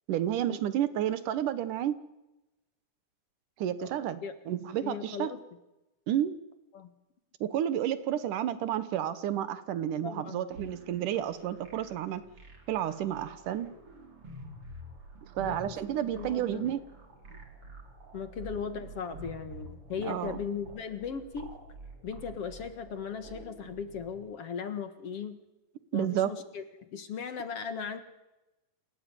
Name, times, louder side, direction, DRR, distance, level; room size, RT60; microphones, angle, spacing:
voice 1, 0.1-2.0 3.6-5.3 6.1-6.4 7.4-12.2 12.7-13.7 15.4-16.8 20.0-20.4 25.9-26.3, right 11 dB, 80° right, 13 dB, 2.8 m, -31 dB
voice 2, 4.8-5.4 6.7-6.9 10.0-10.5 15.4-15.8 16.0-16.7 17.3-17.4 18.1-21.5 22.0-25.4 25.9-26.6 26.9-28.0, left 6 dB, 55° left, 9 dB, 2.3 m, -38 dB
sound 1, 10.5-24.1, right 2 dB, 45° right, 4.8 m, -48 dB
28.0 x 17.5 x 9.2 m, 0.98 s
omnidirectional pair, 3.6 m